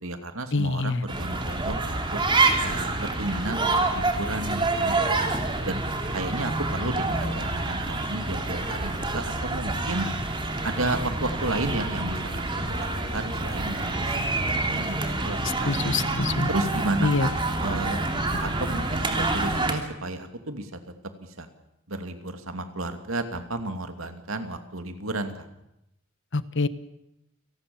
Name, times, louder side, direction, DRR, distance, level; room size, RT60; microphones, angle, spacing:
voice 1, 0.0-2.2 2.6-5.3 5.6-5.8 6.1-10.1 10.6-12.9 13.1-15.7 16.5-17.3 17.6-18.0 18.4-20.8 21.2-21.5 21.9-25.3, right 2 dB, 75° right, 7 dB, 2.7 m, -32 dB
voice 2, 0.5-1.0 15.6-16.5 17.0-17.3 18.3-18.4 26.3-26.7, left 3 dB, 60° left, 13 dB, 1.2 m, -25 dB
sound 1, 1.1-19.7, right 2 dB, 25° right, 3.0 m, -27 dB
29.0 x 19.0 x 7.1 m, 0.86 s
head